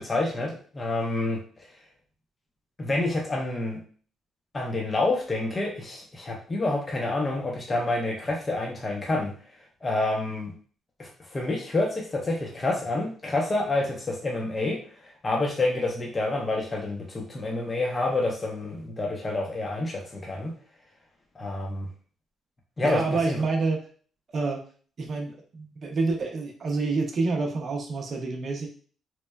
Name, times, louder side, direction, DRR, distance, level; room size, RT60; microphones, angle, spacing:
voice 1, 0.0-1.4 2.8-3.8 4.5-9.3 9.8-10.5 11.0-14.8 15.2-20.5 21.4-21.9 22.8-23.4, left 2 dB, 30° left, -1 dB, 0.6 m, -28 dB
voice 2, 22.8-23.8 24.3-24.6 25.0-28.7, right 3 dB, 50° right, 1 dB, 0.5 m, -28 dB
2.9 x 2.1 x 2.2 m, 0.43 s
cardioid pair, 90°, 0 cm